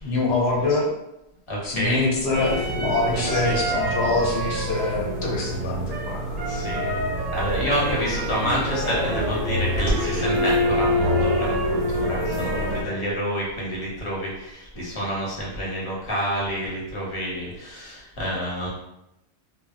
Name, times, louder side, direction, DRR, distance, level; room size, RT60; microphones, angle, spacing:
voice 1, 0.0-0.9 1.6-6.5, left 3 dB, 75° left, -2 dB, 0.9 m, -25 dB
voice 2, 1.5-2.0 3.3-3.6 6.5-6.9 7.3-18.7, equal, 30° left, -4 dB, 0.8 m, -28 dB
sound 1, 2.3-12.8, equal, 50° right, 0.5 m, -25 dB
2.1 x 2.1 x 3.5 m, 0.86 s
omnidirectional pair, 1.2 m